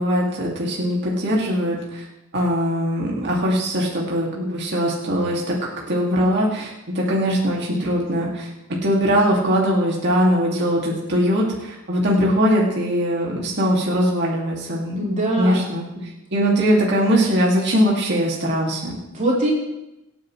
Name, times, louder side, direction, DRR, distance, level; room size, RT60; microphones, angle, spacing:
voice 1, 0.0-2.0 2.3-5.6 5.9-8.5 8.8-15.1 15.4-19.0, equal, 55° right, -3 dB, 2.4 m, -21 dB
voice 2, 15.0-15.6 16.0-16.1 19.1-19.5, right 1 dB, 35° right, -5 dB, 4.4 m, -22 dB
25.5 x 9.4 x 3.2 m, 0.93 s
head